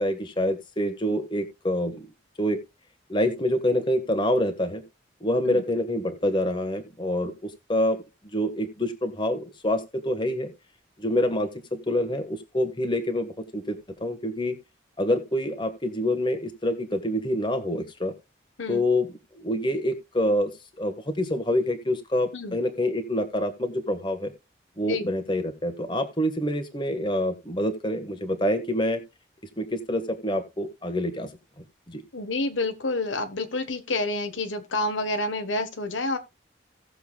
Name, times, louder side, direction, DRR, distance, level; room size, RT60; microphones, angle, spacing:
voice 1, 0.0-2.1 2.4-2.6 3.1-4.8 5.2-8.0 8.3-10.5 11.0-14.6 15.0-18.1 18.7-20.5 20.8-24.3 24.8-29.0 29.6-31.3 31.9-32.0, left 1 dB, 25° left, 1.5 m, -26 dB
voice 2, 32.1-36.2, left 2 dB, 90° left, 1.3 m, -29 dB
17.5 x 7.0 x 2.4 m
head